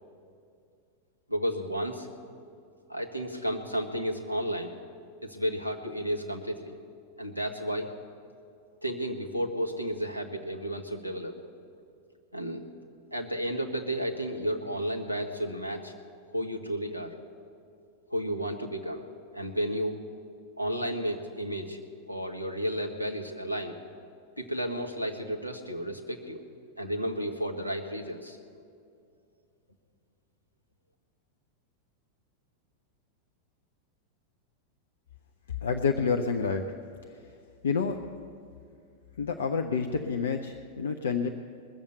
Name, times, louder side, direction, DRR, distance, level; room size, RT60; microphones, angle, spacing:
voice 1, 1.3-2.1 2.9-4.7 5.2-6.8 7.2-7.9 8.8-11.4 12.3-12.6 13.1-15.9 16.3-17.1 18.1-19.0 19.3-20.0 20.6-21.8 22.1-23.8 24.4-26.4 26.8-28.4, equal, 90° left, 2 dB, 1.3 m, -32 dB
voice 2, 35.6-36.7 37.6-38.0 39.2-41.3, left 5 dB, 65° left, 5 dB, 0.6 m, -28 dB
20.5 x 7.2 x 8.0 m, 2.4 s
figure-of-eight pair, 90°, 0 cm